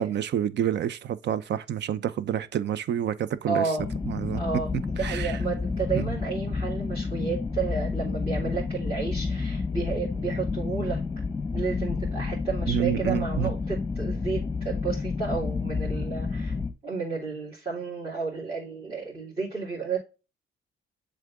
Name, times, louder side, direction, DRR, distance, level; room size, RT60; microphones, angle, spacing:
voice 1, 0.0-3.7 4.1-4.4 5.0-5.4 5.9-6.1 12.7-13.5, right 10 dB, 60° right, 0.7 m, -28 dB
voice 2, 3.5-3.8 4.3-4.7 5.0-11.0 11.5-16.5 16.8-20.0, right 5 dB, 25° right, 3.2 m, -32 dB
sound 1, 3.8-16.7, left 4 dB, 15° left, 1.0 m, -30 dB
7.5 x 3.5 x 3.6 m
cardioid pair, 90°, 20 cm